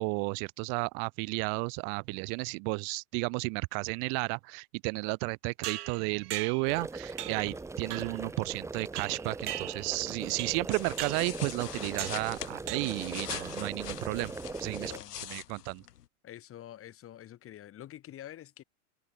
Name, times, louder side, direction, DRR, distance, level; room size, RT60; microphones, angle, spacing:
voice 1, 0.0-14.3 14.6-14.9 15.3-15.8, right 40 dB or more, 50° right, 1.2 m, -33 dB
sound 1, 5.6-6.8 7.2-7.5 7.9-8.2 9.0-10.0 10.4-10.7 11.0-11.3 12.0-12.3 12.7-13.0 13.3-13.7, right 15 dB, 80° right, 1.6 m, -40 dB
sound 2, 6.7-15.0, right 3 dB, 5° right, 0.8 m, -40 dB
sound 3, 10.7-16.1, left 11 dB, 85° left, 2.4 m, -43 dB
voice 2, 14.6-15.2 16.2-18.6, left 12 dB, 30° left, 1.6 m, -47 dB
hypercardioid pair, 115°, 46 cm